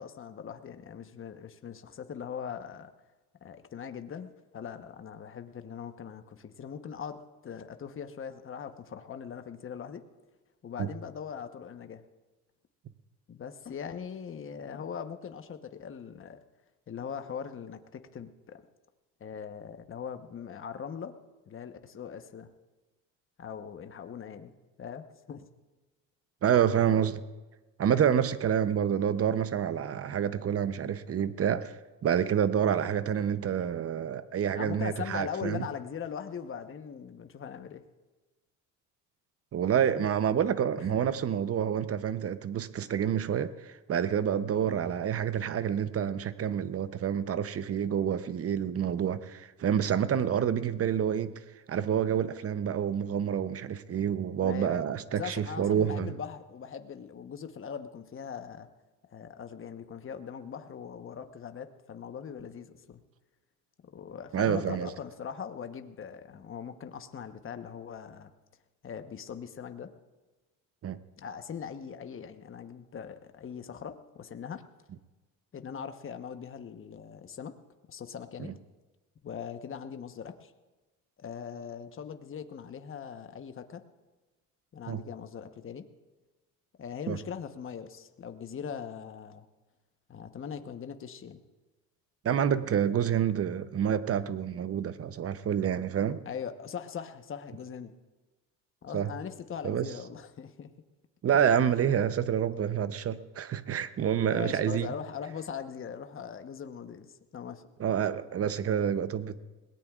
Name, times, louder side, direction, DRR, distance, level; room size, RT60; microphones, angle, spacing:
voice 1, 0.0-2.9 3.4-10.0 10.6-12.0 13.3-16.4 16.9-18.6 19.2-21.2 21.5-22.5 23.4-24.5 24.8-25.4 27.9-28.3 34.5-37.8 39.8-40.1 40.8-41.0 44.6-44.8 54.4-54.8 55.1-58.7 59.1-63.0 63.8-68.3 68.8-69.9 71.2-74.6 75.5-77.6 77.9-78.5 79.2-80.5 81.2-83.8 84.7-85.9 86.8-89.4 90.1-91.4 96.2-97.9 98.8-100.7 104.2-107.7, left 7 dB, 35° left, 8 dB, 1.1 m, -41 dB
voice 2, 26.4-27.2 27.8-35.7 39.5-51.3 51.7-56.1 64.3-64.9 70.8-71.0 78.4-78.5 84.9-85.0 87.1-87.2 92.2-96.2 98.9-99.1 99.6-99.9 101.2-104.9 107.8-109.4, right 8 dB, 40° right, 13 dB, 0.7 m, -28 dB
21.5 x 17.5 x 2.4 m, 1.2 s
supercardioid pair, 90°, 37 cm